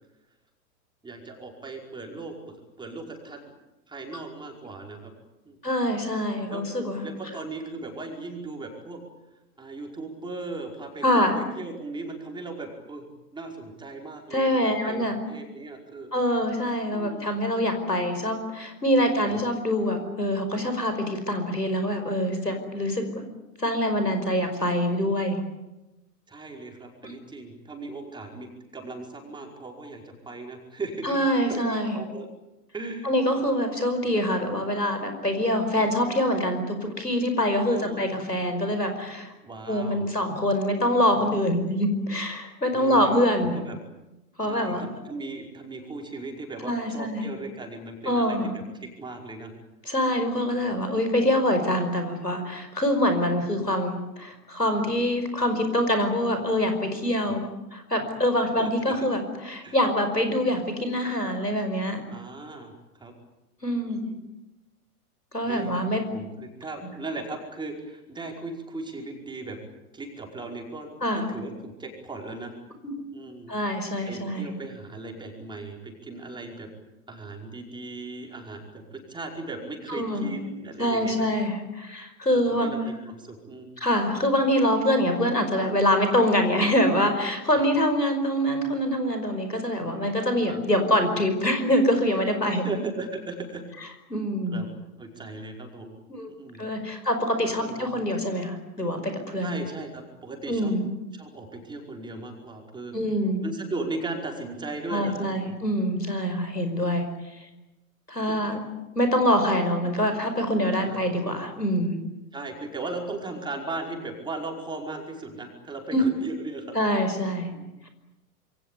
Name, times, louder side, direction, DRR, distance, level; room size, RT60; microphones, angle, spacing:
voice 1, 1.0-3.5 3.9-5.1 5.4-5.6 6.5-6.6 7.0-9.0 9.6-13.0 13.3-16.1 16.9-17.3 18.9-19.4 26.3-31.2 31.5-32.3 32.7-33.1 37.6-38.1 39.4-40.1 42.7-43.8 44.4-49.5 50.3-50.5 57.3-57.4 58.6-58.9 59.6-59.8 62.1-62.7 63.0-63.1 65.4-69.6 69.9-72.5 73.1-73.5 74.0-76.7 77.1-81.3 82.5-83.7 87.5-87.7 90.5-90.9 92.4-93.6 94.5-94.7 95.0-95.9 96.3-96.7 97.6-97.9 99.4-100.7 101.1-102.9 103.4-105.6 108.4-108.6 110.8-111.1 112.3-116.8 117.5-117.7, right 3 dB, 10° right, 1 dB, 5.1 m, -37 dB
voice 2, 5.6-7.1 11.0-11.4 14.3-15.2 16.1-23.2 23.6-25.4 27.0-27.1 31.0-32.0 33.0-39.3 39.7-43.6 44.4-44.8 46.6-47.3 48.1-48.5 49.9-57.4 57.7-62.0 63.6-64.1 65.3-66.0 71.0-71.3 73.5-74.5 79.9-80.3 80.8-82.8 83.8-92.6 94.1-94.7 96.1-96.3 96.6-99.5 100.5-100.8 102.9-103.4 104.9-107.1 108.1-108.6 109.0-112.0 115.9-116.0 116.7-117.5, equal, 90° left, 7 dB, 5.3 m, -25 dB
27.0 x 23.5 x 8.5 m, 1.0 s
figure-of-eight pair, 105°, 47 cm